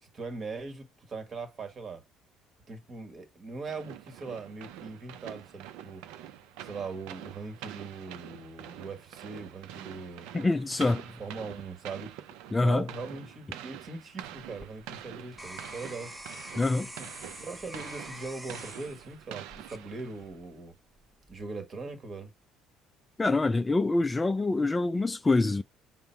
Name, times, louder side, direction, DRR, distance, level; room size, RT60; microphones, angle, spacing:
voice 1, 0.0-2.0 2.7-6.0 6.6-10.3 11.2-12.1 12.6-16.1 16.8-20.7 21.3-22.3, right 4 dB, 40° right, 1.5 m, -40 dB
sound 1, 3.7-20.4, right 11 dB, 85° right, 0.5 m, -46 dB
voice 2, 10.3-11.1 12.5-12.9 16.6-16.9 23.2-25.6, left 2 dB, 15° left, 0.3 m, -25 dB
sound 2, 14.3-20.4 21.0-21.4, right 1 dB, 10° right, 0.9 m, -46 dB
5.4 x 2.1 x 4.5 m
cardioid pair, 110°, 0 cm